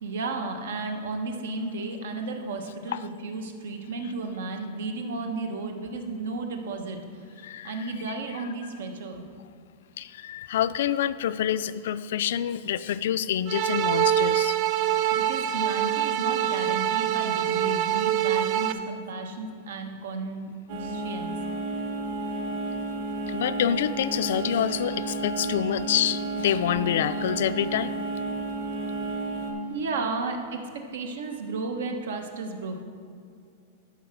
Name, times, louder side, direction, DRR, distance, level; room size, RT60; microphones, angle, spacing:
voice 1, 0.0-7.0 7.6-9.2 15.1-20.5 20.8-21.3 29.7-30.6 30.9-32.8, right 3 dB, 90° right, 5 dB, 1.1 m, -33 dB
voice 2, 7.4-7.9 8.3-8.5 10.0-14.6 23.3-27.9, left 10 dB, 70° left, 14 dB, 0.3 m, -27 dB
sound 1, 13.5-18.7, right 11 dB, 35° right, 0.4 m, -25 dB
sound 2, 20.7-29.5, right 3 dB, 60° right, 1.3 m, -32 dB
11.5 x 4.2 x 6.3 m, 2.3 s
supercardioid pair, 160°, 0 cm